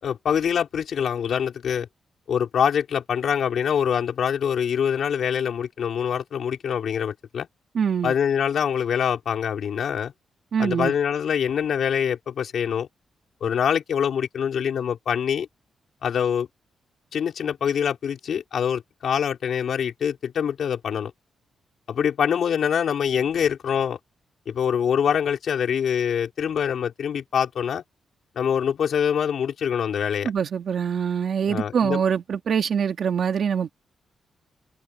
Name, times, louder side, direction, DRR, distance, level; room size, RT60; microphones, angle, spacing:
voice 1, 0.0-1.9 2.3-7.5 8.0-10.1 10.6-12.9 13.4-15.5 16.0-16.5 17.1-21.1 21.9-24.0 24.5-27.8 28.3-30.3 31.5-32.0, left 8 dB, 60° left, 5.0 m, -24 dB
voice 2, 7.7-8.1 10.5-10.9 30.2-33.7, right 7 dB, 55° right, 2.1 m, -24 dB
wide cardioid pair, 145°, 0 cm